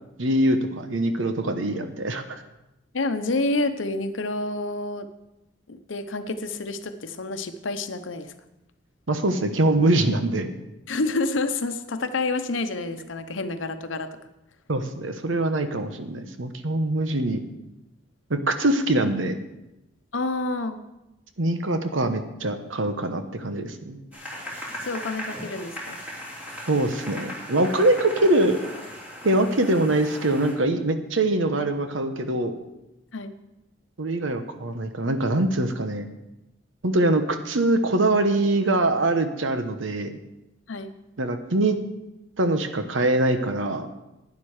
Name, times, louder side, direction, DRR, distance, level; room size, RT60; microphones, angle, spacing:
voice 1, 0.2-2.4 9.1-10.5 14.7-17.4 18.3-19.4 21.4-24.0 26.7-28.6 29.2-32.5 34.0-36.1 36.8-40.2 41.2-41.8 42.4-43.9, right 2 dB, 90° right, 8 dB, 1.0 m, -23 dB
voice 2, 2.9-5.1 5.7-8.3 10.9-14.2 20.1-20.8 24.8-26.0 33.1-33.3 40.7-40.9, left 2 dB, 80° left, 9 dB, 0.9 m, -28 dB
sound 1, 24.1-30.5, equal, 5° right, 3.3 m, -38 dB
11.5 x 9.6 x 4.9 m, 0.95 s
head